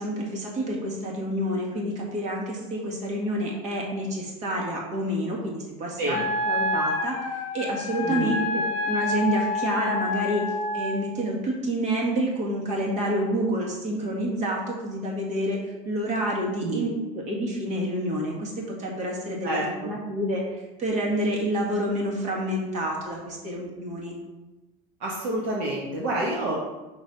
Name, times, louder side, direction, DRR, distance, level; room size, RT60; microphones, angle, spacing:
voice 1, 0.0-10.4 10.7-24.1, right 1 dB, 45° right, -2 dB, 2.0 m, -28 dB
Wind instrument woodwind instrument, 6.1-11.0, left 2 dB, 40° left, 0.9 m, -28 dB
voice 2, 8.0-8.3 16.6-16.9 19.4-19.9 25.0-26.6, right 1 dB, 60° right, -4 dB, 1.5 m, -28 dB
5.7 x 4.2 x 5.4 m, 1.1 s
cardioid pair, 130°, 17 cm